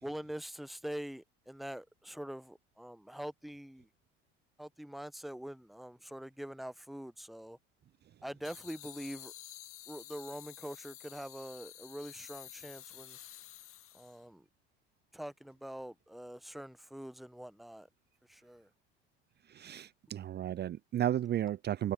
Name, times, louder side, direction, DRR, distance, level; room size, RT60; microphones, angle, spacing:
voice 1, 0.0-3.9 4.6-7.6 8.2-9.3 9.9-13.2 13.9-14.4 15.1-17.9 18.3-18.7, equal, ahead, 1.2 m, -44 dB
sound 1, 8.4-14.2, left 13 dB, 45° left, 1.6 m, -51 dB
voice 2, 19.5-21.9, right 11 dB, 30° right, 0.7 m, -33 dB
figure-of-eight pair, 65°, 32 cm